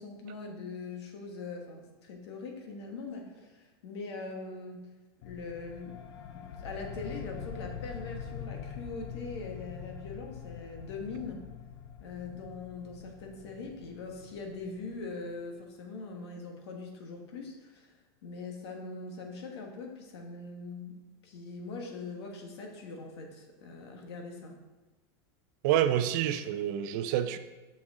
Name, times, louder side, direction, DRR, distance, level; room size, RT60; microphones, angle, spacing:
voice 1, 0.0-4.9 5.2-6.0 6.3-11.5 12.0-18.0 18.2-21.0 21.2-24.5, left 3 dB, 90° left, 2 dB, 1.4 m, -42 dB
sound 1, 5.2-15.4, left 8 dB, 65° left, 0.6 m, -44 dB
voice 2, 25.6-27.4, right 11 dB, 45° right, 11 dB, 0.4 m, -27 dB
6.3 x 6.2 x 3.7 m, 1.2 s
supercardioid pair, 175°, 13 cm